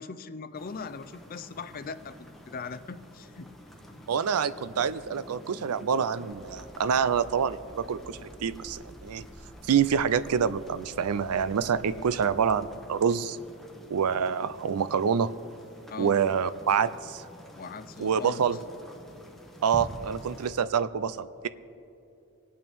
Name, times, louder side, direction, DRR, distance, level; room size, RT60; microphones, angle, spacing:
voice 1, 0.0-2.2 2.5-3.5 15.9-16.2 17.6-18.6, left 4 dB, 40° left, 12 dB, 0.5 m, -40 dB
sound 1, 0.5-20.5, equal, ahead, 0.9 m, -48 dB
voice 2, 4.1-9.3 9.7-13.4 13.9-15.3 16.0-17.2 18.0-18.6 19.6-21.5, right 7 dB, 85° right, 15 dB, 0.4 m, -26 dB
Hammer, 6.3-12.6, equal, 50° right, 3.7 m, -51 dB
25.5 x 8.7 x 3.5 m, 2.8 s
head